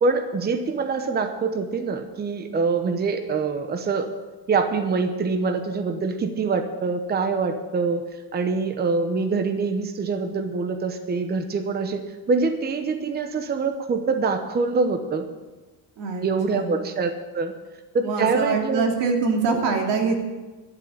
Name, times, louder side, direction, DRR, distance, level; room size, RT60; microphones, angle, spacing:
voice 1, 0.0-4.1 4.5-8.0 8.3-15.3 16.2-17.5 17.9-18.9 19.5-19.7, right 4 dB, 25° right, 7 dB, 0.8 m, -25 dB
voice 2, 16.0-16.8 18.0-20.2, right 4 dB, 85° right, 1 dB, 2.7 m, -24 dB
12.0 x 7.5 x 8.6 m, 1.2 s
cardioid pair, 155°, 42 cm